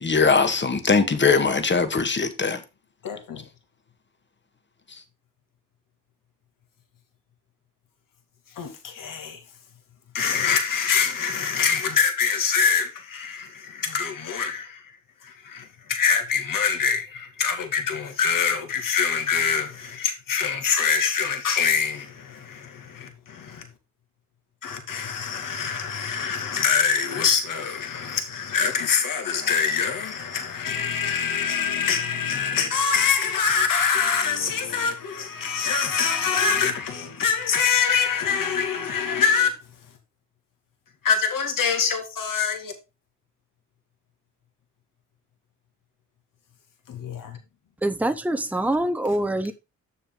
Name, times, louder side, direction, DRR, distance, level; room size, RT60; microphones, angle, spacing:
voice 1, 0.0-2.6, left 4 dB, 30° left, 1.7 m, -21 dB
voice 2, 3.0-3.4 8.6-9.4 10.1-14.9 15.2-23.7 24.6-39.5 41.0-42.7 46.9-47.4, left 6 dB, 60° left, 2.3 m, -24 dB
voice 3, 47.8-49.5, right 1 dB, 5° right, 0.9 m, -24 dB
7.3 x 6.6 x 3.8 m
hypercardioid pair, 50°, 37 cm